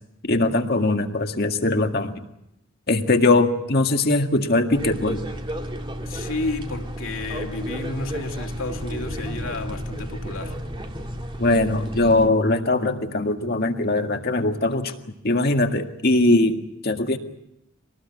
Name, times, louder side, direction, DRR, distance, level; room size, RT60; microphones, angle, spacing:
voice 1, 0.2-2.2 2.9-5.2 11.4-14.9 15.2-17.2, left 2 dB, 50° left, 1.9 m, -21 dB
sound 1, 4.7-12.3, equal, 25° right, 2.1 m, -32 dB
voice 2, 6.0-10.6, left 2 dB, 85° left, 2.8 m, -31 dB
25.5 x 19.5 x 9.2 m
head